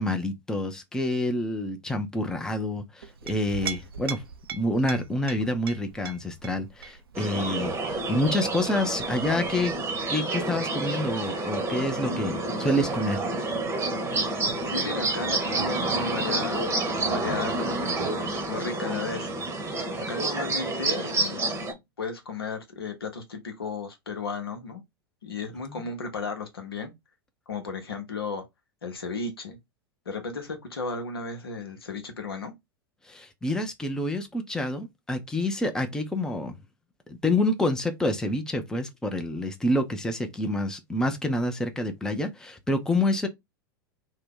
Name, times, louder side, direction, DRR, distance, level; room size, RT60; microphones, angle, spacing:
voice 1, 0.0-4.2 4.5-9.7 10.1-13.2 25.6-25.8 33.0-36.6 37.1-43.3, left 1 dB, 5° left, 0.5 m, -28 dB
Chink clink, 3.0-10.1, right 6 dB, 80° right, 0.4 m, -41 dB
sound 1, 7.1-21.7, right 2 dB, 20° right, 0.8 m, -29 dB
voice 2, 14.6-18.0 18.3-19.3 20.0-21.7 22.0-24.8 25.2-26.9 27.5-28.4 28.8-29.6 30.1-32.5, left 4 dB, 80° left, 0.8 m, -34 dB
2.7 x 2.2 x 3.6 m
figure-of-eight pair, 90°, 12 cm